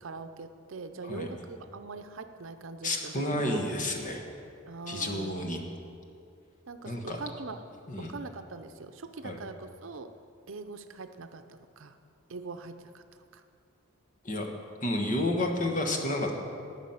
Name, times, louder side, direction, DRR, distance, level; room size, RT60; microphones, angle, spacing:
voice 1, 0.0-3.6 4.7-5.5 6.7-7.6 8.0-10.1 10.5-12.0 12.3-13.0 13.3-13.4, right 3 dB, 70° right, 8 dB, 0.7 m, -42 dB
voice 2, 2.8-4.2 4.9-5.6 6.8-7.2 7.9-8.1 9.2-9.4 14.2-14.5 14.8-16.4, left 1 dB, 40° left, 2 dB, 1.3 m, -30 dB
18.5 x 6.2 x 5.7 m, 2.4 s
head